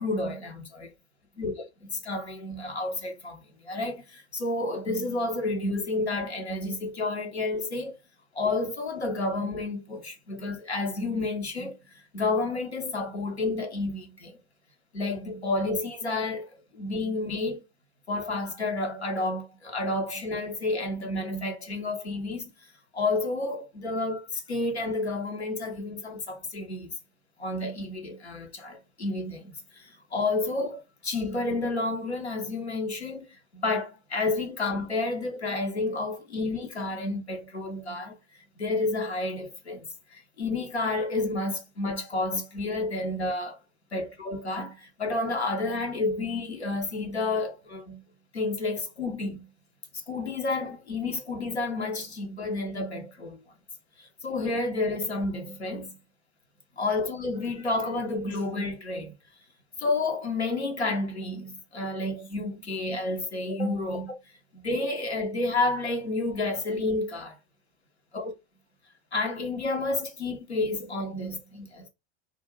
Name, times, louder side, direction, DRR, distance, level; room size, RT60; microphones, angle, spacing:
voice 1, 0.0-0.9 1.4-8.0 8.3-11.8 12.1-14.4 14.9-17.6 18.1-22.5 22.9-26.9 27.4-38.2 38.6-39.9 40.1-43.6 43.9-48.0 48.3-49.4 50.1-53.4 54.0-55.9 56.8-59.1 59.8-64.1 64.5-67.4 68.1-68.3 69.1-71.9, left 2 dB, 85° left, 0.6 m, -30 dB
2.2 x 2.1 x 3.0 m
figure-of-eight pair, 70°, 32 cm